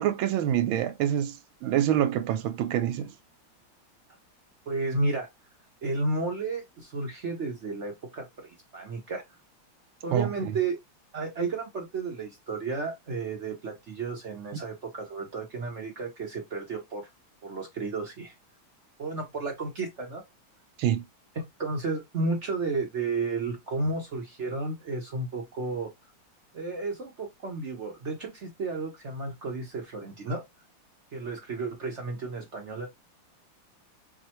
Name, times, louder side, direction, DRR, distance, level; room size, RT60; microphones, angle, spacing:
voice 1, 0.0-3.1 10.1-10.3 20.8-21.0, right 11 dB, 80° right, 1.4 m, -26 dB
voice 2, 4.7-5.3 5.8-9.2 10.0-10.8 11.1-17.1 17.4-18.3 19.0-20.2 21.6-25.9 26.5-30.4 31.1-32.9, right 3 dB, 60° right, 0.7 m, -32 dB
6.4 x 2.2 x 2.9 m
omnidirectional pair, 2.4 m